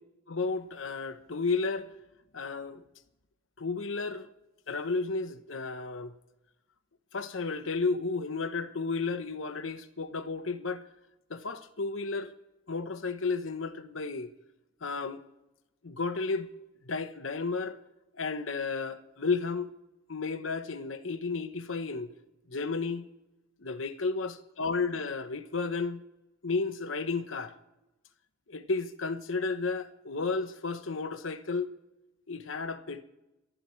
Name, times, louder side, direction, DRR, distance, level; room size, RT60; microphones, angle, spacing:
voice 1, 0.3-1.9 2.3-2.8 3.6-4.3 4.7-6.1 7.1-10.8 11.3-12.3 12.7-14.3 14.8-15.2 15.8-16.5 16.9-17.8 18.2-19.7 20.1-22.1 22.5-23.1 23.6-26.0 26.4-27.5 28.5-31.7 32.3-33.0, left 4 dB, 80° left, 1.0 m, -32 dB
28.0 x 11.0 x 3.2 m
head